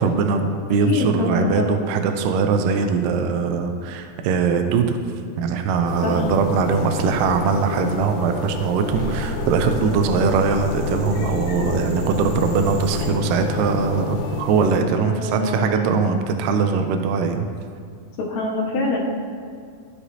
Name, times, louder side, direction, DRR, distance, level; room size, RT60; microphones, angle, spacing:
voice 1, 0.0-5.0 5.4-17.5, right 5 dB, 80° right, 5 dB, 2.0 m, -21 dB
voice 2, 0.9-1.9 6.0-6.2 14.8-16.1 18.2-19.0, left 3 dB, 60° left, -4 dB, 2.3 m, -25 dB
sound 1, 5.9-14.7, left 5 dB, 80° left, 2.8 m, -30 dB
sound 2, 8.8-13.1, left 2 dB, 50° right, 2.3 m, -30 dB
14.5 x 5.0 x 2.8 m, 2.2 s
omnidirectional pair, 4.1 m